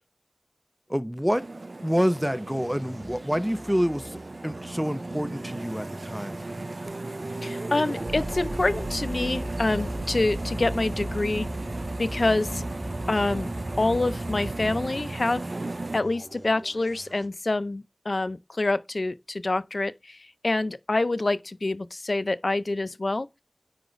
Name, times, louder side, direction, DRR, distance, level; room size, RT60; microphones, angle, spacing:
voice 1, 0.9-1.5 1.8-6.5, equal, 5° right, 0.6 m, -27 dB
sound 1, 1.3-16.0, right 2 dB, 85° right, 0.3 m, -36 dB
sound 2, 2.0-17.3, right 1 dB, 65° right, 2.9 m, -47 dB
sound 3, 6.9-16.2, right 1 dB, 40° right, 1.5 m, -36 dB
voice 2, 7.4-11.5 12.0-12.6 13.1-15.4 15.9-23.4, left 2 dB, 85° left, 0.4 m, -27 dB
9.7 x 3.9 x 3.1 m
wide cardioid pair, 40°, 0 cm